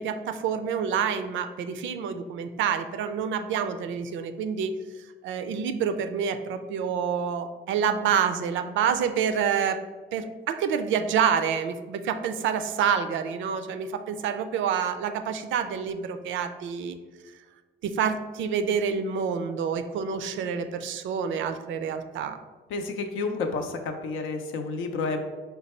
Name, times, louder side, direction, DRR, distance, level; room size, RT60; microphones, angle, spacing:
voice 1, 0.0-4.7 5.2-9.8 10.1-17.0 17.8-22.4, right 7 dB, 75° right, 9 dB, 0.4 m, -27 dB
voice 2, 22.7-25.2, left 3 dB, 85° left, 6 dB, 0.5 m, -30 dB
4.4 x 2.3 x 4.2 m, 1.3 s
cardioid pair, 90°, 20 cm